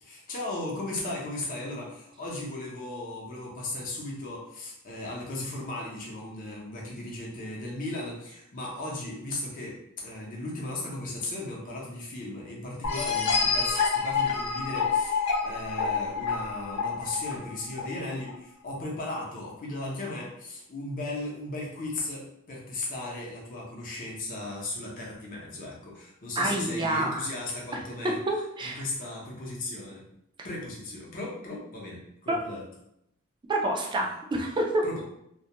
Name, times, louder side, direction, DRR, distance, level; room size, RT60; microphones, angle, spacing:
voice 1, 0.0-28.2 28.6-30.0 30.4-32.6 34.8-35.0, left 2 dB, 40° left, -3 dB, 0.6 m, -36 dB
sound 1, 12.8-18.3, left 5 dB, 85° left, 0.5 m, -28 dB
voice 2, 26.4-27.3 28.3-28.8 32.3-32.4 33.5-34.8, right 1 dB, 20° right, 1 dB, 0.3 m, -28 dB
2.2 x 2.1 x 2.8 m, 0.77 s
head